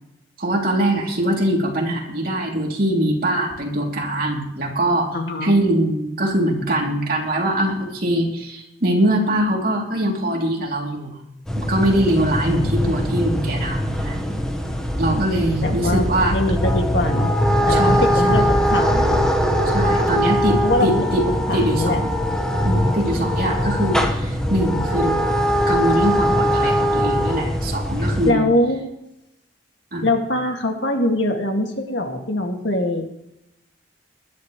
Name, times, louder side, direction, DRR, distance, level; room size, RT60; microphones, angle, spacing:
voice 1, 0.4-5.1 5.4-11.2 11.5-14.2 15.0-16.4 17.7-18.5 19.7-21.3 21.5-22.1 22.6-25.2 25.7-28.5 29.9-30.1, right 1 dB, 50° right, -1 dB, 3.1 m, -22 dB
voice 2, 5.1-5.5 15.6-17.3 17.7-19.2 20.6-22.0 28.0-28.8 30.0-33.1, left 1 dB, 65° left, 3 dB, 2.2 m, -23 dB
sound 1, 11.5-28.3, equal, 5° left, 1.3 m, -21 dB
20.0 x 11.5 x 3.2 m, 0.85 s
head